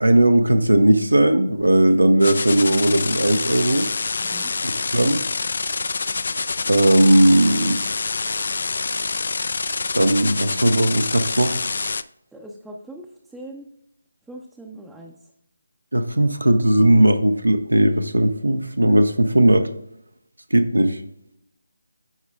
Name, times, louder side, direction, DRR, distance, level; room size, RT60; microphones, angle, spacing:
voice 1, 0.0-3.9 4.6-5.2 6.6-7.8 9.9-11.6 15.9-19.7 20.5-21.0, right 1 dB, 90° right, 8 dB, 0.8 m, -17 dB
sound 1, 2.2-12.0, left 4 dB, 55° left, 0.4 m, -26 dB
voice 2, 4.2-4.5 12.3-13.7 14.3-15.3, right 1 dB, 5° right, -2 dB, 0.5 m, -41 dB
14.0 x 4.8 x 2.3 m, 0.79 s
figure-of-eight pair, 155°, 0 cm